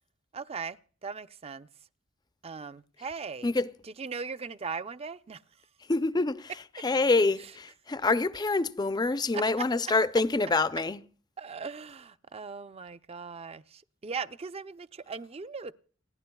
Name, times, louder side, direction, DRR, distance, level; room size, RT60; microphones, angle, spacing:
voice 1, 0.3-1.7 2.4-3.5 4.0-5.4 9.3-9.6 11.4-15.7, right 5 dB, 30° right, 0.5 m, -39 dB
voice 2, 5.9-11.0, left 3 dB, 20° left, 0.5 m, -26 dB
29.5 x 10.0 x 2.3 m
head